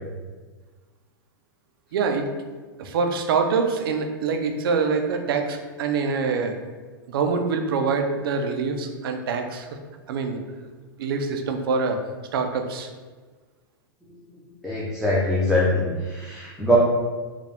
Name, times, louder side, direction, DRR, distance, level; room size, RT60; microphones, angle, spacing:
voice 1, 1.9-2.3 2.8-6.6 7.1-9.7 10.1-10.7 11.0-12.0 12.3-12.9, right 5 dB, 75° right, 5 dB, 0.6 m, -25 dB
voice 2, 14.6-16.8, equal, ahead, -7 dB, 0.7 m, -22 dB
4.8 x 2.4 x 3.5 m, 1.4 s
hypercardioid pair, 125°, 12 cm